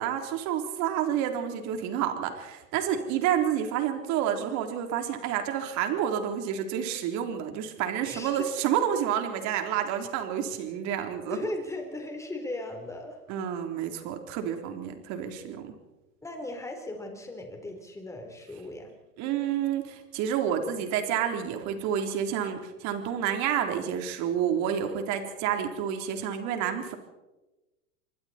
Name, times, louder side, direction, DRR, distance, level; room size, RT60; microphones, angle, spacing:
voice 1, 0.0-11.4 13.3-15.7 19.2-26.9, right 9 dB, 40° right, 5 dB, 3.7 m, -29 dB
voice 2, 8.0-8.5 11.3-13.2 16.2-18.9, left 2 dB, 5° left, 3 dB, 4.0 m, -37 dB
26.5 x 23.5 x 4.4 m, 1.1 s
hypercardioid pair, 135°, 45 cm